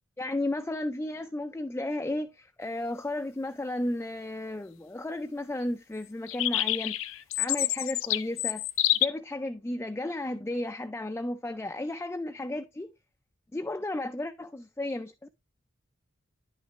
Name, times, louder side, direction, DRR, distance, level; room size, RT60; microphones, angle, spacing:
voice 1, 0.2-8.6 9.0-12.9 13.5-15.3, left 1 dB, 10° left, 0.3 m, -33 dB
sound 1, 6.3-9.1, left 15 dB, 85° left, 0.5 m, -27 dB
10.0 x 5.7 x 3.0 m
head